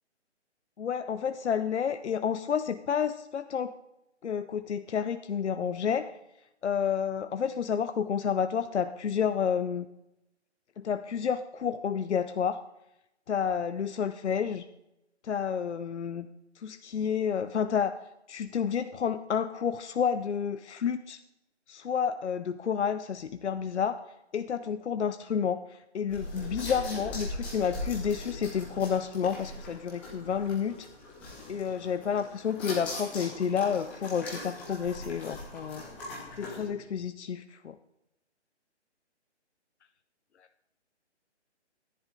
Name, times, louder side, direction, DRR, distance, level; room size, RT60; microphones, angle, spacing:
voice 1, 0.8-3.7 4.2-6.1 6.6-9.9 10.8-12.6 13.3-14.7 15.2-16.3 16.6-18.0 18.3-21.2 21.7-24.0 24.3-30.9 31.5-35.8 36.4-37.8, left 7 dB, 75° left, 10 dB, 0.7 m, -30 dB
sound 1, 26.1-36.6, left 2 dB, 5° left, 0.7 m, -40 dB
14.0 x 10.5 x 3.8 m, 0.86 s
hypercardioid pair, 160°, 35 cm